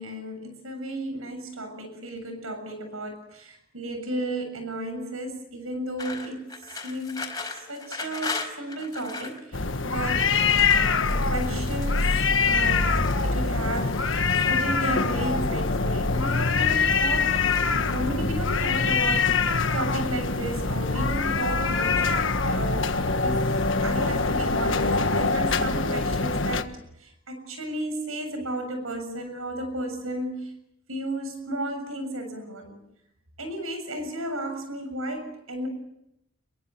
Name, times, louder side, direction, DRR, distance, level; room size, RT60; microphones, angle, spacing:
voice 1, 0.0-6.5 6.8-10.3 10.7-17.4 17.9-26.7 27.0-30.5 30.9-32.8 33.4-35.7, right 1 dB, 80° right, 7 dB, 7.1 m, -33 dB
sound 1, 6.0-9.4 10.1-12.2 12.7-13.3 13.7-14.6 15.5-16.2 16.5-17.1 17.5-18.3, left 3 dB, 15° left, 4.9 m, -38 dB
sound 2, 9.5-26.6, left 4 dB, 60° left, 1.4 m, -24 dB
27.5 x 23.0 x 7.6 m, 0.81 s
head